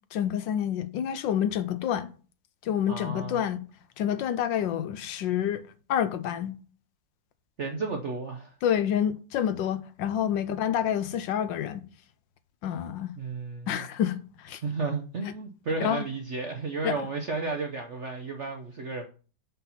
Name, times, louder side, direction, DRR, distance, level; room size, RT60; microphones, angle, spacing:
voice 1, 0.1-2.1 2.6-3.6 4.0-5.6 5.9-6.5 8.6-11.8 12.6-13.1 13.7-14.6 15.8-16.0 16.8-17.0, left 9 dB, 75° left, 1.3 m, -28 dB
voice 2, 2.9-3.4 7.6-8.5 13.1-13.8 14.6-19.1, right 3 dB, 60° right, 0.8 m, -33 dB
5.9 x 5.5 x 5.5 m
omnidirectional pair, 2.1 m